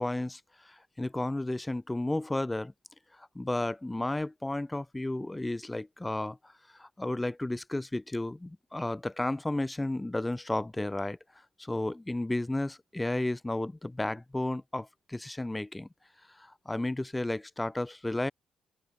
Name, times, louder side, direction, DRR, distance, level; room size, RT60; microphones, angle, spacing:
voice 1, 0.0-2.7 3.2-6.5 6.8-11.2 11.6-15.9 16.4-18.3, left 2 dB, 10° left, 4.4 m, -33 dB
open air
cardioid pair, 90°, 0 cm